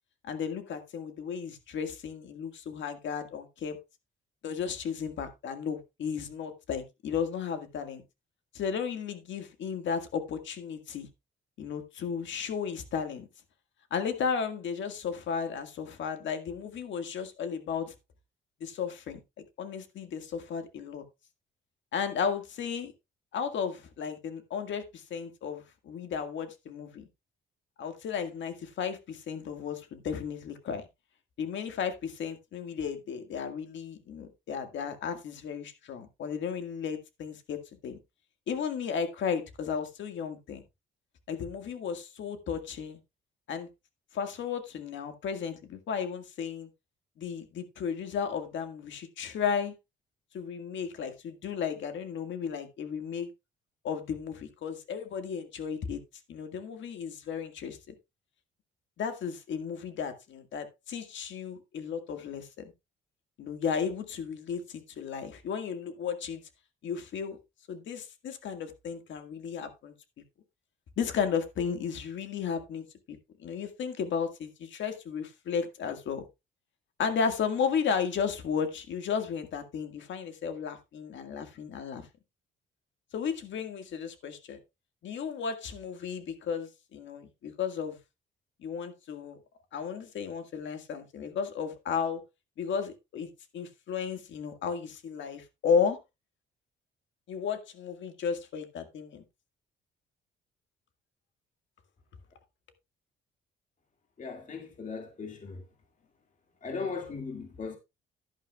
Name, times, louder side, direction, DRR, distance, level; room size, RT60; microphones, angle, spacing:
voice 1, 0.2-3.8 4.4-8.0 8.5-11.1 11.6-13.3 13.9-17.9 18.6-21.0 21.9-22.9 23.3-27.1 27.8-30.8 31.4-38.0 38.5-40.6 41.3-43.0 43.5-43.7 44.1-46.7 47.2-49.7 50.3-53.3 53.8-56.0 56.3-57.9 59.0-62.7 63.4-66.4 66.8-67.4 67.7-69.9 71.0-72.8 73.4-76.2 77.0-82.1 83.1-84.6 85.0-88.0 88.6-89.4 89.7-92.2 92.6-93.3 93.5-96.0 97.3-99.2, left 6 dB, 70° left, 1.9 m, -34 dB
voice 2, 104.2-105.6 106.6-107.8, left 4 dB, 40° left, 2.2 m, -38 dB
11.5 x 11.5 x 2.4 m
cardioid pair, 90°, 20 cm